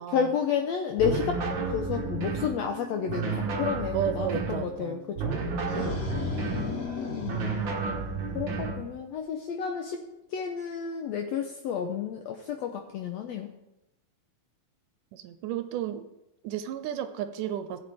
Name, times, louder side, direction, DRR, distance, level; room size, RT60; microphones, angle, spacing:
voice 1, 0.1-5.3 6.5-7.6 8.3-10.0 10.3-13.5, left 7 dB, 85° left, 4 dB, 1.5 m, -31 dB
sound 1, 1.0-2.6 3.1-4.7 5.2-6.7 7.3-8.8, right 4 dB, 55° right, 1.3 m, -31 dB
Piano, 1.6-8.8, right 11 dB, 20° right, 2.8 m, -48 dB
voice 2, 3.9-5.0 5.6-5.9 15.1-16.1 16.4-17.8, right 9 dB, 80° right, 10 dB, 2.1 m, -33 dB
sound 2, 5.5-8.6, left 3 dB, 50° left, 3.0 m, -35 dB
16.0 x 8.1 x 3.5 m, 0.92 s
omnidirectional pair, 3.9 m